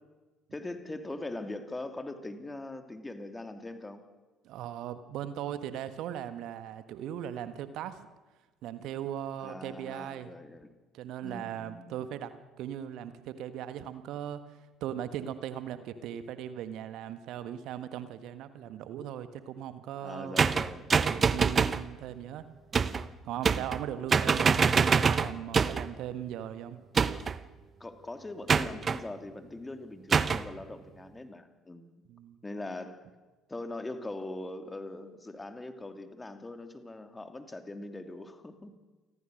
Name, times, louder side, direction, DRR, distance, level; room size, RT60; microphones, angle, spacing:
voice 1, 0.5-4.1 9.4-10.7 11.2-11.9 20.0-21.0 27.8-32.0 32.4-33.1 33.5-38.7, left 2 dB, 15° left, 7 dB, 2.8 m, -41 dB
voice 2, 4.4-8.0 8.6-10.3 10.9-20.6 21.0-22.5 23.2-26.8 32.1-32.4, right 10 dB, 60° right, 11 dB, 1.5 m, -39 dB
sound 1, 20.4-21.9 22.7-23.1 23.4-23.9 24.1-25.9 27.0-27.4 28.5-29.0 30.1-30.5, right 5 dB, 35° right, 1.0 m, -25 dB
29.0 x 21.5 x 6.5 m, 1.3 s
figure-of-eight pair, 55°, 0 cm